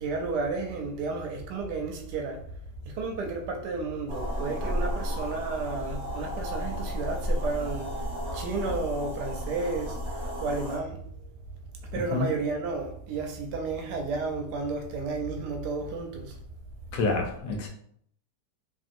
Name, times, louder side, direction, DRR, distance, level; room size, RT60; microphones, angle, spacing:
voice 1, 0.0-2.4 2.8-11.0 11.9-16.4, right 3 dB, 75° right, 1.1 m, -32 dB
sound 1, 4.1-10.8, equal, 45° right, 0.8 m, -33 dB
voice 2, 16.9-17.7, left 3 dB, 75° left, 1.1 m, -27 dB
2.9 x 2.6 x 2.5 m
omnidirectional pair, 1.8 m